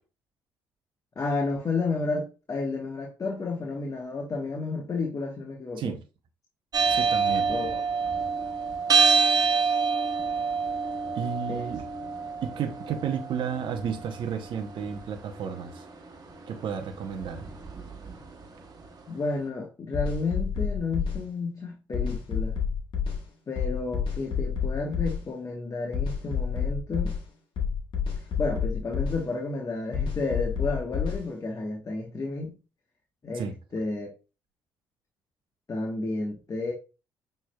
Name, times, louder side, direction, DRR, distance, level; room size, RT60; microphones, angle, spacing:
voice 1, 1.2-5.9 7.5-7.8 11.5-11.7 19.1-22.6 23.5-27.2 28.4-32.6 33.2-34.1 35.7-36.7, left 3 dB, 35° left, 1.0 m, -31 dB
sound 1, 6.7-18.9, right 5 dB, 40° right, 1.3 m, -28 dB
voice 2, 6.9-7.5 11.1-11.8 12.4-15.9 16.5-17.4 33.3-33.5, right 7 dB, 55° right, 0.6 m, -32 dB
sound 2, 19.9-21.2 21.9-23.2 23.6-25.2 25.9-27.2 27.6-29.2 29.9-31.2, left 6 dB, 60° left, 1.3 m, -29 dB
6.0 x 3.2 x 2.2 m
hypercardioid pair, 50°, 10 cm